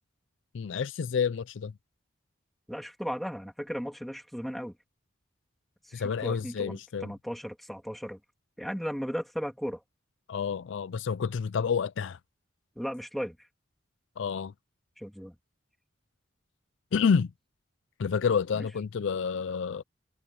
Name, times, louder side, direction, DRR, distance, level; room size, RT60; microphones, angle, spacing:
voice 1, 0.5-1.8 5.9-7.1 10.3-12.2 14.2-14.5 16.9-17.3 18.0-19.8, left 6 dB, 65° left, 0.4 m, -29 dB
voice 2, 2.7-4.7 5.9-8.2 8.6-9.8 12.8-13.4 15.0-15.3 18.6-18.7, equal, ahead, 2.7 m, -36 dB
head